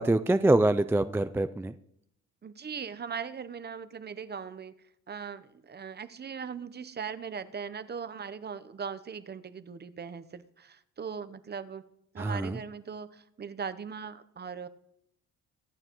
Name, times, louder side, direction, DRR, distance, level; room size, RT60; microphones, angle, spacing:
voice 1, 0.0-1.7 12.2-12.6, right 2 dB, 10° right, 11 dB, 0.4 m, -25 dB
voice 2, 2.4-4.7 5.1-11.8 12.1-14.7, right 6 dB, 35° right, 13 dB, 0.8 m, -39 dB
24.5 x 8.9 x 3.0 m, 0.77 s
cardioid pair, 90°, 30 cm